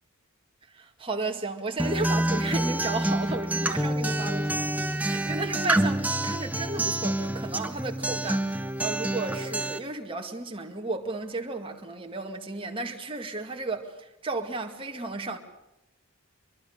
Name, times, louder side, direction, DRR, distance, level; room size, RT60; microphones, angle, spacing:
voice 1, 0.7-4.6 5.0-8.5 8.8-15.4, right 3 dB, 25° right, 2.1 m, -33 dB
Acoustic guitar, 1.8-9.8, right 1 dB, 5° right, 1.1 m, -27 dB
24.5 x 23.0 x 6.7 m
head